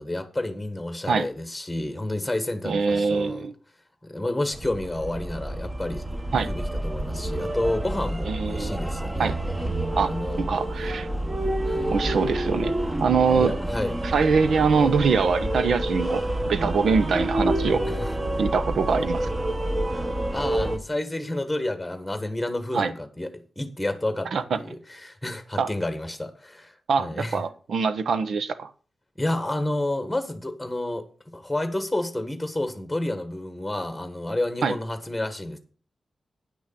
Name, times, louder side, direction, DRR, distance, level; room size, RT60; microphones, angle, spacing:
voice 1, 0.0-3.5 4.0-6.0 6.4-9.4 10.0-10.5 11.6-11.9 13.3-13.9 17.8-18.1 20.3-23.3 23.6-27.4 29.2-35.6, left 1 dB, 5° left, 1.3 m, -30 dB
voice 2, 2.7-3.5 6.3-6.5 8.3-8.7 9.2-9.3 10.0-11.1 11.9-13.6 14.0-17.8 18.4-19.3 22.7-22.9 24.3-24.6 25.6-25.7 26.9-28.7 34.6-34.8, right 5 dB, 75° right, 1.0 m, -23 dB
sound 1, 4.5-20.8, right 1 dB, 20° right, 1.2 m, -28 dB
10.0 x 6.3 x 6.9 m
wide cardioid pair, 140°, 0 cm